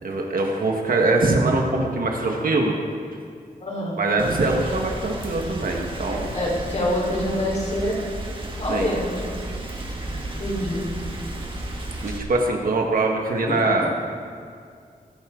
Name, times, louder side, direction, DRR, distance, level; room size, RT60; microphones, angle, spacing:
voice 1, 0.0-2.8 4.0-6.3 8.7-8.9 12.0-13.9, right 2 dB, 70° right, 1 dB, 1.7 m, -22 dB
voice 2, 3.6-3.9 6.3-7.9 8.6-9.3 10.1-10.9 13.5-13.6, left 1 dB, 50° left, -4 dB, 4.4 m, -26 dB
Rain, 4.2-12.2, right 1 dB, 35° right, 1.9 m, -33 dB
22.5 x 12.0 x 3.9 m, 2.3 s
wide cardioid pair, 120°, 15 cm